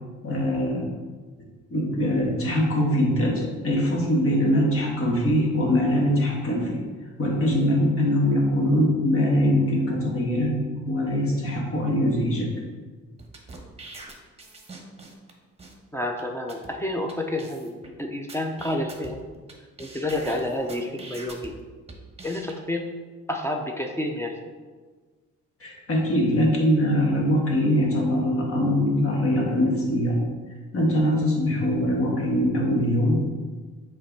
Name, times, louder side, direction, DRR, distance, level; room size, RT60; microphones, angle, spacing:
voice 1, 0.2-0.9 1.4-6.8 7.2-12.5 25.6-30.2 30.7-33.2, equal, 45° left, -1 dB, 1.7 m, -22 dB
sound 1, 13.2-15.3 15.6-15.7 16.2-16.3 16.5-16.7 17.1-17.2 17.4-17.9 18.3-19.5 19.8-21.5 21.9-22.5, right 3 dB, 20° right, 1.1 m, -43 dB
voice 2, 15.9-19.2 19.8-21.6 22.2-22.9 23.3-24.4, left 1 dB, 10° left, 2 dB, 0.6 m, -29 dB
6.6 x 3.3 x 4.6 m, 1.4 s
cardioid pair, 90°, 30 cm